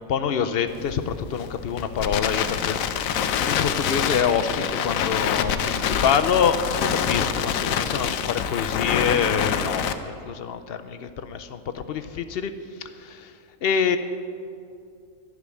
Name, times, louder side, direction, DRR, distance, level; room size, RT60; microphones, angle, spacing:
voice 1, 0.0-12.5 12.8-13.3 13.6-14.0, left 7 dB, 60° left, 9 dB, 0.7 m, -26 dB
Crackle, 0.7-9.9, left 8 dB, 75° left, 1.0 m, -26 dB
11.5 x 6.3 x 9.3 m, 2.4 s
omnidirectional pair, 1.5 m